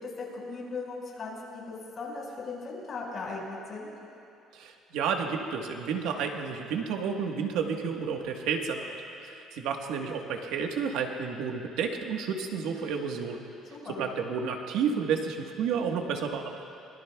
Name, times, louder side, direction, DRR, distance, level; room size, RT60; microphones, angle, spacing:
voice 1, 0.0-3.9 13.7-14.1, left 3 dB, 35° left, -3 dB, 4.8 m, -38 dB
voice 2, 4.5-8.9 9.2-13.4 14.0-16.6, right 6 dB, 80° right, 3 dB, 1.3 m, -31 dB
25.0 x 21.5 x 2.3 m, 2.6 s
cardioid pair, 145°, 0 cm